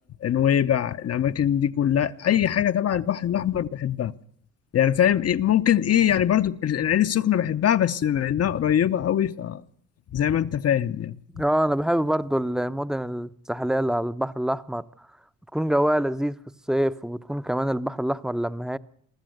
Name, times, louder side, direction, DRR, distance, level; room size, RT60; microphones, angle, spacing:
voice 1, 0.2-4.1 4.7-9.6 10.1-11.2, left 10 dB, 55° left, 0.9 m, -22 dB
voice 2, 11.3-14.8 15.5-16.4 16.7-18.8, right 1 dB, ahead, 0.8 m, -25 dB
23.5 x 14.0 x 7.9 m
cardioid pair, 90°, 30 cm